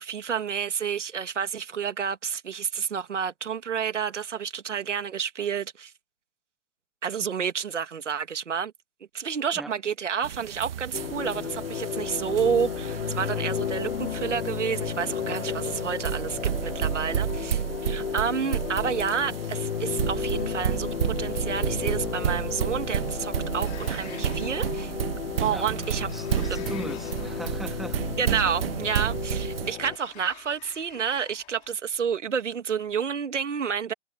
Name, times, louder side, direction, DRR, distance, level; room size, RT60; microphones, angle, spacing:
voice 1, 0.0-5.9 7.0-8.7 9.1-24.9 25.4-26.1 26.5-26.6 28.2-33.9, right 7 dB, 90° right, 2.4 m, -30 dB
sound 1, 10.2-29.7, right 10 dB, 55° right, 1.4 m, -32 dB
sound 2, 10.9-30.0, left 8 dB, 85° left, 1.3 m, -33 dB
Sliding door, 23.6-31.8, left 17 dB, 20° left, 2.3 m, -50 dB
voice 2, 26.1-28.0, right 1 dB, ahead, 1.0 m, -38 dB
hypercardioid pair, 160°, 35 cm